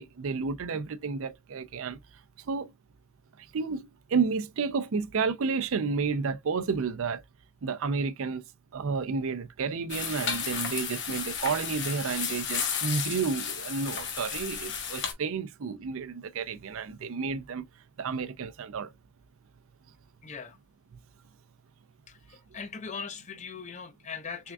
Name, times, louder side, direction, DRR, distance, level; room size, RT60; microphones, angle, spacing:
voice 1, 0.0-2.0 2.5-2.7 3.5-7.2 7.6-8.4 8.7-17.6 18.0-18.9, right 5 dB, 65° right, 0.5 m, -31 dB
sound 1, 9.9-15.1, left 7 dB, 55° left, 0.9 m, -33 dB
voice 2, 20.2-20.6 22.1-24.5, left 5 dB, 30° left, 0.5 m, -40 dB
3.5 x 3.5 x 2.3 m
head